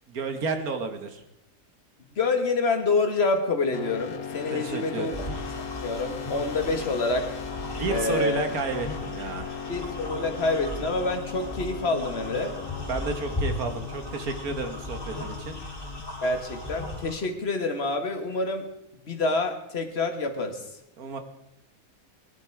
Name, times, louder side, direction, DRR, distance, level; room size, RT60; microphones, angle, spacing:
voice 1, 0.1-1.2 4.5-5.1 7.8-9.6 12.9-15.6 21.0-21.2, right 3 dB, 80° right, 7 dB, 1.9 m, -31 dB
voice 2, 2.0-5.3 5.8-7.3 7.9-8.4 9.7-12.6 16.2-18.7 19.0-20.8, left 3 dB, 45° left, 6 dB, 1.8 m, -27 dB
sound 1, 3.7-17.3, left 7 dB, 80° left, 1.4 m, -38 dB
sound 2, 5.1-17.2, equal, 15° left, 3.1 m, -37 dB
19.0 x 11.0 x 4.7 m, 0.85 s
omnidirectional pair, 1.5 m